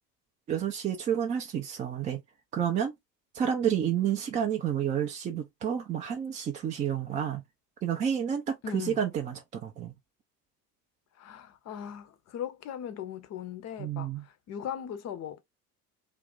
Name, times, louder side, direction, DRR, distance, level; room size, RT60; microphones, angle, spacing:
voice 1, 0.5-2.2 2.5-2.9 3.3-7.4 7.8-10.0 13.8-14.2, right 9 dB, 20° right, 0.3 m, -30 dB
voice 2, 8.6-9.0 11.1-15.4, left 9 dB, 35° left, 0.6 m, -39 dB
2.5 x 2.1 x 3.6 m
figure-of-eight pair, 65°, 50 cm